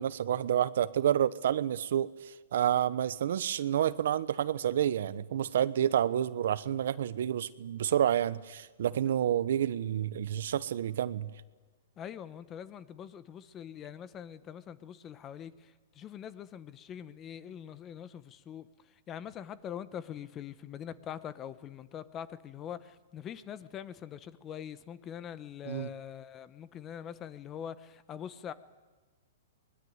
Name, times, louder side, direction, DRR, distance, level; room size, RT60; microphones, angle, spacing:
voice 1, 0.0-11.3 25.7-25.9, right 10 dB, 70° right, 1.0 m, -29 dB
voice 2, 12.0-28.5, left 9 dB, 20° left, 1.0 m, -43 dB
22.5 x 21.0 x 9.5 m
hypercardioid pair, 150°, 0 cm